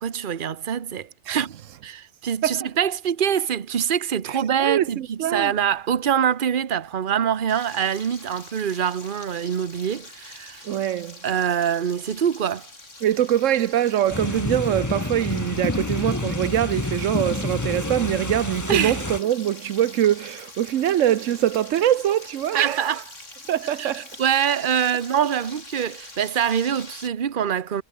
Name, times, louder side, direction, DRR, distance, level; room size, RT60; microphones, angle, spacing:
voice 1, 0.0-1.5 1.8-10.8 11.2-12.7 18.7-19.0 22.5-23.0 23.8-27.8, right 8 dB, 45° right, 1.1 m, -24 dB
voice 2, 4.3-5.5 10.6-11.2 13.0-22.9 23.5-24.1, right 11 dB, 85° right, 1.1 m, -23 dB
Frying (food), 7.5-27.1, left 2 dB, 75° left, 5.0 m, -44 dB
sound 1, 14.1-19.2, left 2 dB, 15° left, 0.9 m, -28 dB
omnidirectional pair, 1.3 m